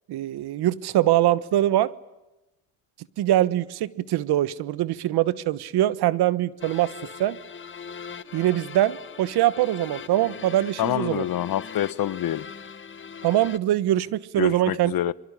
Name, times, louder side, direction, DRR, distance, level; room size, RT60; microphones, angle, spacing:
voice 1, 0.1-1.9 3.2-6.9 7.2-7.4 8.3-11.2 13.2-14.9, right 13 dB, 70° right, 1.3 m, -23 dB
sound 1, 6.6-13.6, left 6 dB, 30° left, 1.3 m, -41 dB
voice 2, 10.8-12.5 14.4-15.1, left 12 dB, 60° left, 1.1 m, -26 dB
25.5 x 23.5 x 10.0 m
cardioid pair, 85°, 40 cm